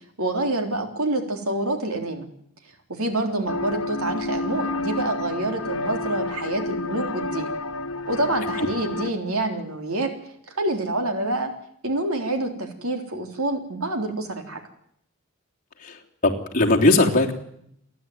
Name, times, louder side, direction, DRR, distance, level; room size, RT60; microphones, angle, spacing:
voice 1, 0.2-2.3 2.9-7.5 8.1-10.1 10.6-11.5 11.8-14.6, right 2 dB, 85° right, 5 dB, 3.5 m, -27 dB
sound 1, 3.5-9.1, left 2 dB, 70° left, 1.5 m, -29 dB
voice 2, 15.8-17.3, left 2 dB, 40° left, -1 dB, 3.3 m, -20 dB
28.5 x 11.0 x 9.3 m, 0.71 s
head